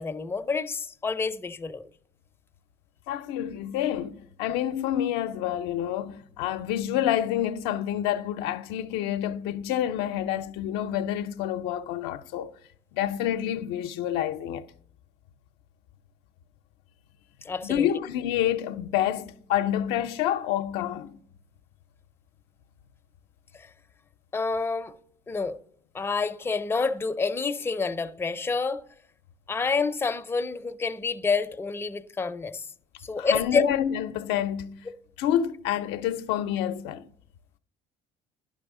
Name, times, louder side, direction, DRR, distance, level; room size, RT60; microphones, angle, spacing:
voice 1, 0.0-1.8 17.4-17.9 23.5-23.7 24.3-25.0 25.3-25.6 25.9-28.8 29.5-32.7 33.0-33.6, left 4 dB, 15° left, 0.4 m, -28 dB
voice 2, 3.1-12.5 12.9-14.6 17.6-21.2 33.2-34.8 35.2-37.0, left 11 dB, 85° left, 0.4 m, -28 dB
11.0 x 5.5 x 3.6 m
supercardioid pair, 95°, 17 cm